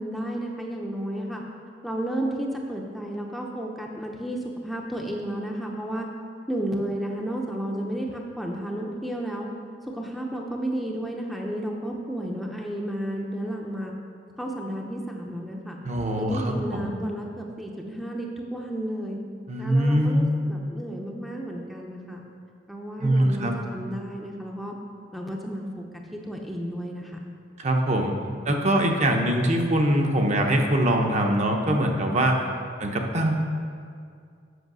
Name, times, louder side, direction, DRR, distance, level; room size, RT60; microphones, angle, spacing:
voice 1, 0.0-1.4 1.8-6.1 6.5-9.5 9.8-13.9 14.4-15.8 16.2-19.2 19.6-22.2 22.7-24.8 25.1-25.9 26.1-27.2, right 1 dB, ahead, -1 dB, 0.6 m, -32 dB
voice 2, 15.8-16.9 19.5-20.3 23.0-23.5 27.6-28.2 28.4-32.4 32.8-33.4, right 1 dB, 40° right, 2 dB, 0.8 m, -23 dB
8.0 x 5.7 x 6.2 m, 2.3 s
head